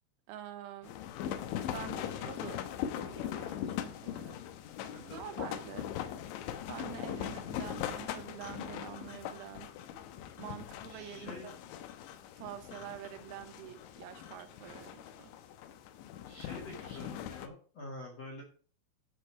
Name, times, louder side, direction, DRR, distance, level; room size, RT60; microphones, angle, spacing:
voice 1, 0.3-1.0 1.4-2.6 3.0-4.4 5.0-5.9 6.7-9.7 10.4-11.6 12.4-15.3, right 11 dB, 90° right, 3.7 m, -47 dB
sound 1, 0.8-17.5, left 10 dB, 75° left, 3.0 m, -41 dB
voice 2, 10.9-11.5 16.3-18.4, left 2 dB, 50° left, 2.0 m, -47 dB
14.5 x 5.2 x 4.6 m
omnidirectional pair, 5.9 m